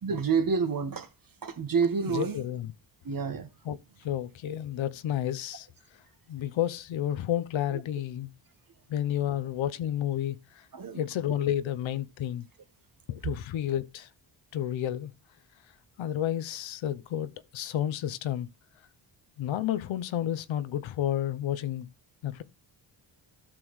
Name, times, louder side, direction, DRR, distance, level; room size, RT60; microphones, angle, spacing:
voice 1, 0.0-1.1 1.4-2.4 3.0-3.5 10.7-11.0, right 5 dB, 45° right, 1.2 m, -28 dB
voice 2, 2.1-2.7 3.6-3.8 4.0-5.7 6.3-8.3 8.9-10.4 11.0-12.4 13.1-14.1 14.5-15.1 16.0-18.5 19.4-21.9 22.2-22.4, left 11 dB, 80° left, 0.7 m, -31 dB
12.5 x 6.1 x 3.1 m
cardioid pair, 75°, 46 cm